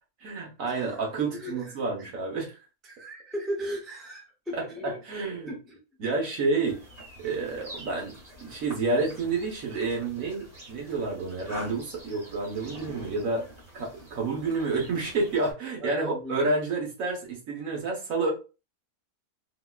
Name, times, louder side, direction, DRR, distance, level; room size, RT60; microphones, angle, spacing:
voice 1, 0.2-2.6 4.5-5.5 6.0-6.8 7.2-13.5 13.7-18.3, right 3 dB, 60° right, 1.3 m, -29 dB
voice 2, 1.2-1.8 2.8-4.9 5.5-5.8 15.8-16.4, equal, ahead, 0.4 m, -37 dB
sound 1, 6.6-15.5, equal, 30° right, 1.2 m, -45 dB
4.0 x 2.3 x 2.3 m
omnidirectional pair, 1.6 m